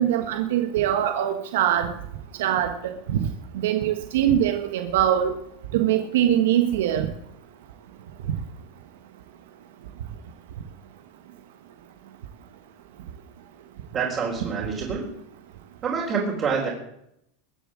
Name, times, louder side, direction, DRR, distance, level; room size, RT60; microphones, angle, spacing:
voice 1, 0.0-1.9 2.4-2.7 3.1-3.2 3.5-5.3 5.7-7.1, right 11 dB, 80° right, 6 dB, 1.4 m, -22 dB
voice 2, 13.9-15.1 15.8-16.7, right 5 dB, 30° right, -4 dB, 4.1 m, -26 dB
21.5 x 7.5 x 7.6 m, 0.78 s
supercardioid pair, 140°, 0 cm